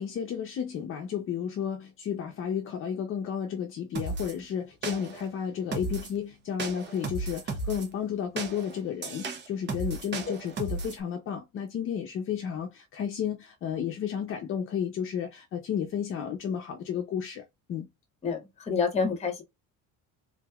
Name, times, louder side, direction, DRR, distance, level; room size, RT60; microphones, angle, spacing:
voice 1, 0.0-17.4 17.7-17.9, left 8 dB, 35° left, 0.7 m, -32 dB
sound 1, 4.0-4.3 4.8-5.3 5.7-6.2 6.6-7.9 8.4-11.0, right 3 dB, 30° right, 0.8 m, -34 dB
voice 2, 18.2-19.4, left 5 dB, 20° left, 1.0 m, -28 dB
3.9 x 3.1 x 2.3 m
cardioid pair, 175°, 36 cm